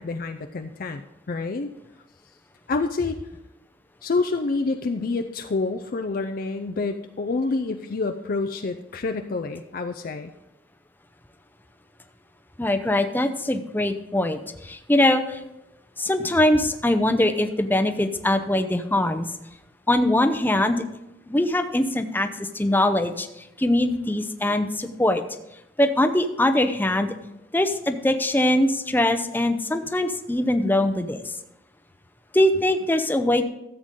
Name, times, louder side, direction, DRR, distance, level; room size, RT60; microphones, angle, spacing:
voice 1, 0.0-1.7 2.7-3.2 4.0-10.3, left 3 dB, 55° left, 6 dB, 0.5 m, -28 dB
voice 2, 12.6-15.4 16.0-19.3 19.9-20.8 21.3-23.3 23.6-25.2 25.8-27.1 27.5-31.2 32.3-33.4, left 1 dB, 10° left, 8 dB, 0.6 m, -22 dB
13.5 x 8.0 x 3.7 m, 0.89 s
head